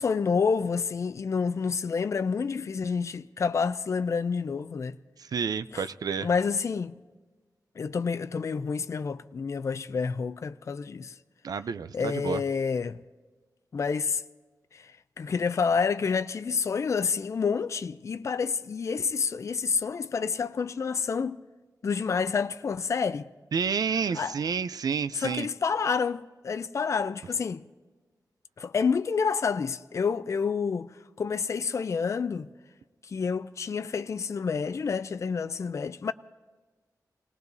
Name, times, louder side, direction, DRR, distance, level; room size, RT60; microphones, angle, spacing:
voice 1, 0.0-5.0 5.7-5.9 6.2-7.0 7.8-11.1 11.9-13.0 13.7-14.2 14.7-21.4 21.8-23.3 24.1-24.3 25.1-27.7 28.6-30.9 31.2-32.5 33.1-36.1, left 5 dB, 45° left, 0.4 m, -28 dB
voice 2, 5.3-6.3 11.4-12.4 23.5-25.5, right 6 dB, 65° right, 0.5 m, -29 dB
28.0 x 19.0 x 2.7 m
wide cardioid pair, 145°, 7 cm